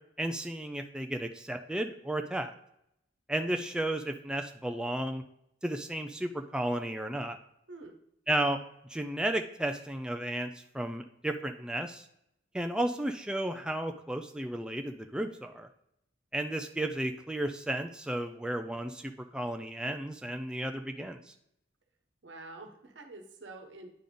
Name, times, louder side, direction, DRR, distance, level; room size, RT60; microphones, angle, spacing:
voice 1, 0.2-2.5 3.3-5.2 5.6-7.4 8.3-8.6 8.9-10.5 10.7-12.1 12.5-15.7 16.3-21.3, right 1 dB, 5° right, 5 dB, 0.3 m, -33 dB
voice 2, 22.2-23.9, right 2 dB, 80° right, 4 dB, 1.0 m, -47 dB
9.9 x 3.6 x 3.8 m, 0.76 s
head